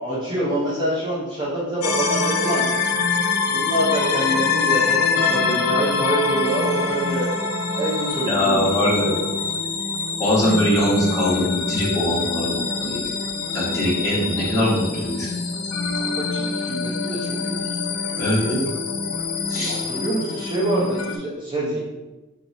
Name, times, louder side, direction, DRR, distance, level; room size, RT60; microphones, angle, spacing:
voice 1, 0.0-2.7 3.5-7.3 7.8-9.1 15.9-17.7 19.7-21.8, right 1 dB, 20° right, -7 dB, 0.7 m, -26 dB
sound 1, 1.8-21.2, left 4 dB, 80° left, 0.6 m, -25 dB
voice 2, 8.3-9.3 10.2-13.1 13.5-15.3 18.2-18.6 19.5-19.8, equal, 15° left, -8 dB, 1.4 m, -22 dB
4.2 x 2.9 x 4.1 m, 1.1 s
head